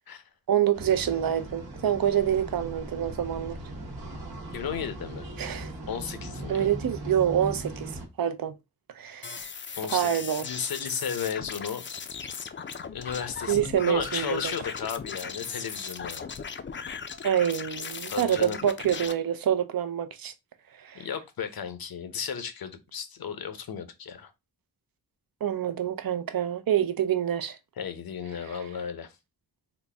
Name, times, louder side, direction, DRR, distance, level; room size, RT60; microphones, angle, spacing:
voice 1, 0.5-3.6 5.4-5.7 6.5-7.9 8.2-8.6 9.0-9.5 9.9-10.5 13.5-14.5 17.2-20.3 20.8-21.1 25.4-27.6 28.5-28.6, right 10 dB, 70° right, 0.6 m, -26 dB
sound 1, 0.7-8.1, right 1 dB, 90° right, 1.2 m, -39 dB
voice 2, 4.5-5.3 5.9-6.7 9.8-11.8 12.9-16.3 18.1-18.6 20.9-24.3 27.8-29.1, left 7 dB, 75° left, 0.7 m, -34 dB
sound 2, 9.2-19.1, left 6 dB, 35° left, 0.4 m, -38 dB
3.9 x 2.1 x 3.3 m
wide cardioid pair, 110°, 36 cm